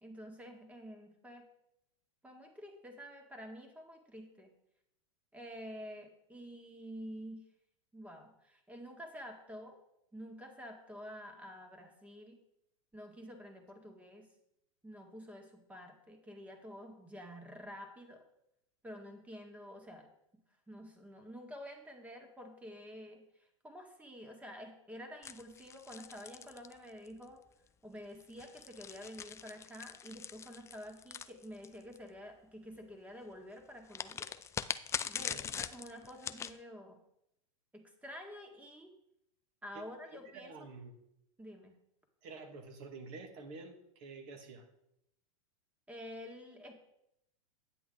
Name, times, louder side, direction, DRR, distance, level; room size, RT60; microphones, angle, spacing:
voice 1, 0.0-1.5 2.2-4.5 5.3-7.4 7.9-9.8 10.1-12.4 12.9-14.3 14.8-18.2 18.8-20.1 20.7-27.4 27.8-34.3 35.1-37.0 37.7-38.9 39.6-40.7 41.4-41.8 45.9-46.7, equal, 10° right, 3 dB, 1.8 m, -49 dB
sound 1, 25.2-27.2 28.2-32.0 33.9-36.6, left 7 dB, 15° left, 0.3 m, -42 dB
voice 2, 40.1-41.0 42.2-44.6, right 3 dB, 55° right, 4 dB, 1.9 m, -49 dB
9.3 x 7.8 x 3.9 m, 0.79 s
hypercardioid pair, 110°, 18 cm